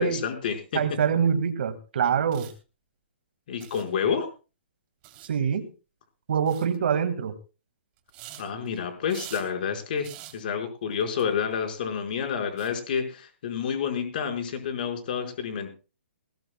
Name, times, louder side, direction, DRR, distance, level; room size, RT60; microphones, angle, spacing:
voice 1, 0.0-0.8 3.5-4.3 8.4-10.1 10.3-15.7, left 7 dB, 50° left, 4 dB, 4.7 m, -29 dB
voice 2, 0.7-2.5 5.2-5.7 6.3-7.4, right 7 dB, 60° right, 8 dB, 1.9 m, -25 dB
sound 1, 1.1-1.2 2.2-2.5 3.6-3.9 5.0-5.4 6.5-6.8 8.0-8.8 9.1-9.5 10.0-10.4 11.0-11.2 11.5-11.6 12.6-12.7, right 13 dB, 25° right, 3.0 m, -44 dB
20.0 x 19.0 x 2.2 m, 0.33 s
hypercardioid pair, 165°, 6 cm